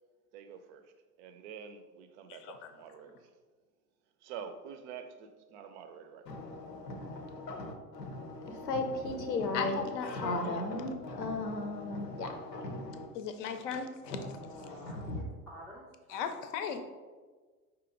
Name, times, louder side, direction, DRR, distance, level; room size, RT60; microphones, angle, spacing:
voice 1, 0.3-3.3 4.2-6.4, right 7 dB, 45° right, 0.6 m, -47 dB
voice 2, 6.3-13.1 14.0-15.2, left 2 dB, 90° left, 0.7 m, -37 dB
voice 3, 9.5-10.6 13.1-14.2 16.1-16.8, left 6 dB, 50° left, 0.6 m, -36 dB
voice 4, 14.1-16.3, right 1 dB, ahead, 0.4 m, -51 dB
4.8 x 2.8 x 3.7 m
figure-of-eight pair, 85°, 48 cm